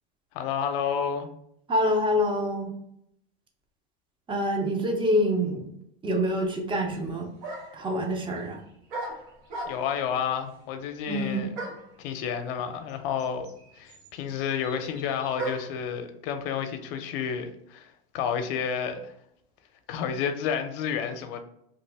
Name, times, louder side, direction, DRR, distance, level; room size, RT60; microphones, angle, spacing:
voice 1, 0.3-1.3 9.7-11.5 12.0-13.5 13.8-19.1 19.9-21.4, left 7 dB, 70° left, 7 dB, 0.6 m, -30 dB
voice 2, 1.7-2.7 4.3-5.7 6.0-7.3 7.7-8.6 11.1-11.5, equal, 15° right, 3 dB, 0.6 m, -26 dB
sound 1, 6.9-7.0 7.4-7.9 8.9-10.1 11.5-12.0 12.9-13.0 13.2-15.8, right 2 dB, 70° right, 1.1 m, -37 dB
3.0 x 2.5 x 3.3 m, 0.76 s
supercardioid pair, 125°, 29 cm